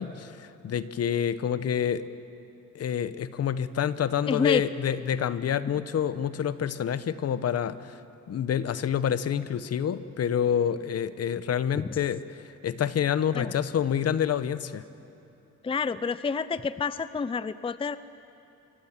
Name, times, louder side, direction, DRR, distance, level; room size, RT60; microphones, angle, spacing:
voice 1, 0.0-2.0 2.7-8.0 8.3-14.8, left 8 dB, 55° left, 14 dB, 1.0 m, -28 dB
voice 2, 4.3-4.6 11.8-11.9 13.3-13.5 15.6-18.0, left 5 dB, 20° left, 15 dB, 0.5 m, -28 dB
25.5 x 23.5 x 7.4 m, 2.8 s
cardioid pair, 90°, 30 cm